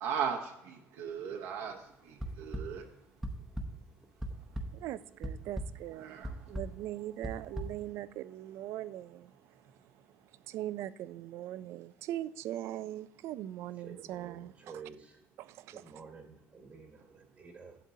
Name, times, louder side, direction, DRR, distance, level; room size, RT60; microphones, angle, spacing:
voice 1, 0.0-2.8 6.0-6.3, right 7 dB, 85° right, 1 dB, 0.9 m, -37 dB
sound 1, 2.2-2.6 3.2-3.7 4.0-4.6 5.2-5.7 6.2-6.6 7.2-7.6, right 1 dB, 5° right, 0.8 m, -36 dB
voice 2, 4.7-9.3 10.5-14.7 15.4-15.8, right 13 dB, 65° right, 17 dB, 0.4 m, -40 dB
voice 3, 13.8-15.2 15.7-17.8, right 5 dB, 30° right, 3 dB, 1.2 m, -50 dB
11.5 x 7.5 x 2.7 m, 0.86 s
cardioid pair, 140°, 5 cm